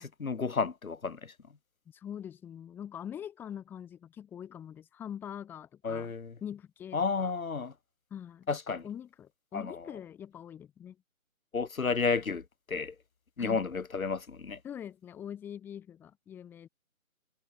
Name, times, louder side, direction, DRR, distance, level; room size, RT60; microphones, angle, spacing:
voice 1, 0.0-1.3 5.8-6.3 6.9-7.7 8.5-8.8 9.5-9.7 11.5-12.9 13.4-14.6, left 5 dB, 80° left, 1.5 m, -32 dB
voice 2, 1.9-6.1 6.4-7.3 8.1-8.5 8.8-11.0 13.4-13.6 14.6-16.7, left 9 dB, 5° left, 2.1 m, -43 dB
figure-of-eight pair, 160°, 42 cm